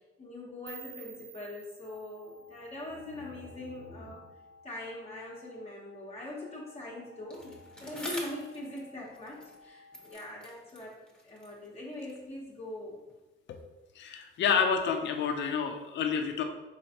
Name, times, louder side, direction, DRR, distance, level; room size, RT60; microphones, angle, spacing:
voice 1, 0.2-4.3 4.6-11.0 11.2-13.0, left 1 dB, 30° left, -5 dB, 0.9 m, -42 dB
sound 1, 0.7-3.6, right 10 dB, 70° right, 0.4 m, -51 dB
sound 2, 1.8-10.1, left 3 dB, 55° right, 1.2 m, -57 dB
Bicycle, 7.3-9.7 9.9-12.3 13.1-13.2, left 1 dB, 5° left, 1.0 m, -46 dB
voice 2, 14.0-16.4, left 6 dB, 65° left, 5 dB, 0.5 m, -29 dB
4.9 x 3.2 x 2.8 m, 1.1 s
cardioid pair, 90°, 20 cm